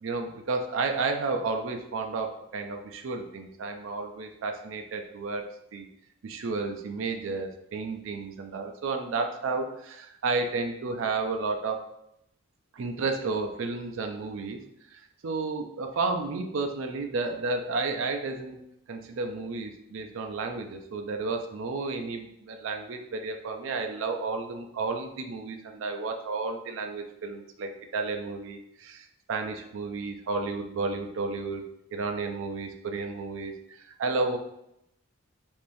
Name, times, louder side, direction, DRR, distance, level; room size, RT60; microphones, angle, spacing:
voice 1, 0.0-5.5 5.7-5.9 6.2-11.9 12.7-14.6 14.9-18.6 18.9-31.6 31.9-34.4, right 3 dB, 65° right, 4 dB, 0.4 m, -32 dB
3.5 x 2.5 x 2.6 m, 0.80 s
head